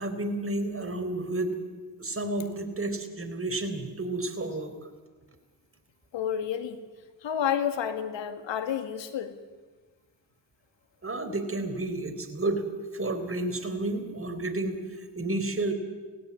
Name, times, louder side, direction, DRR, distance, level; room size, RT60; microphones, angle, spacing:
voice 1, 0.0-1.6 2.0-4.7 11.0-12.7 12.9-15.7, right 2 dB, 25° right, 7 dB, 4.1 m, -31 dB
voice 2, 6.1-6.8 7.2-9.3, left 9 dB, 65° left, 9 dB, 2.0 m, -30 dB
17.5 x 16.5 x 9.9 m, 1.4 s
supercardioid pair, 50°, 47 cm